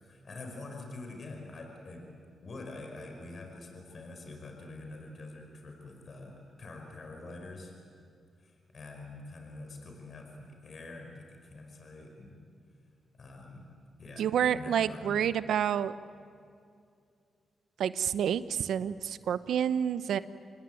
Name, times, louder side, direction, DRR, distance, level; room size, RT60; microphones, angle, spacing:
voice 1, 0.0-2.1 2.4-7.7 8.4-12.4 13.1-13.7 14.0-15.4, left 2 dB, 50° left, 2 dB, 5.1 m, -45 dB
voice 2, 14.2-15.9 17.8-20.2, right 9 dB, 80° right, 14 dB, 0.8 m, -29 dB
27.5 x 20.5 x 9.3 m, 2.4 s
cardioid pair, 60°, 0 cm